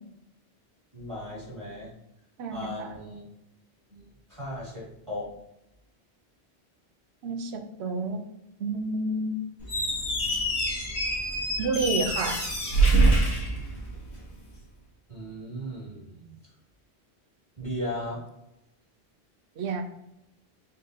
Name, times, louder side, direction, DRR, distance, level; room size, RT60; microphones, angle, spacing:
voice 1, 0.9-1.9 2.5-3.2 3.9-4.0 4.3-5.3 15.1-16.1 17.6-18.2, equal, 30° right, -5 dB, 1.6 m, -36 dB
voice 2, 2.4-3.0 7.2-8.2 8.6-9.4 11.6-12.4 19.6-19.8, right 3 dB, 80° right, 7 dB, 0.9 m, -30 dB
Squeak, 9.6-14.3, right 2 dB, 75° left, 1.5 m, -25 dB
4.1 x 3.7 x 2.7 m, 0.85 s
omnidirectional pair, 1.1 m